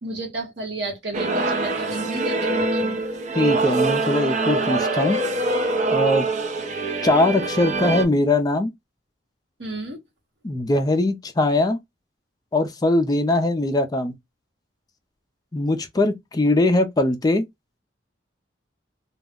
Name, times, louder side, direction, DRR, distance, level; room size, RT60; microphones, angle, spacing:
voice 1, 0.0-3.0 9.6-10.0, right 2 dB, 70° right, 1.1 m, -32 dB
sound 1, 1.1-8.0, right 2 dB, 40° right, 0.5 m, -24 dB
voice 2, 3.4-5.2 5.9-6.3 7.0-8.7 10.4-11.8 12.5-14.1 15.5-17.5, left 2 dB, 20° left, 0.3 m, -21 dB
2.3 x 2.0 x 3.4 m
head